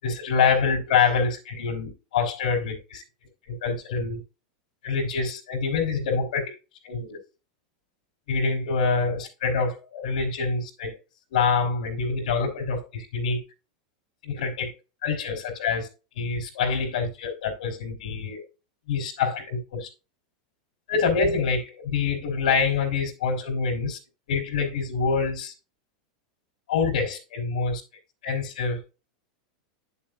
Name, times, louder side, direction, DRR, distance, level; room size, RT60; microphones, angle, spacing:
voice 1, 0.0-3.0 3.5-4.2 4.8-6.5 6.8-7.2 8.3-11.0 11.3-13.4 14.2-14.7 15.0-15.9 16.1-18.4 18.9-19.9 20.9-24.0 24.3-25.5 26.7-27.8 28.2-28.8, left 5 dB, 75° left, 4.3 m, -26 dB
11.0 x 7.1 x 2.5 m
supercardioid pair, 170°, 4 cm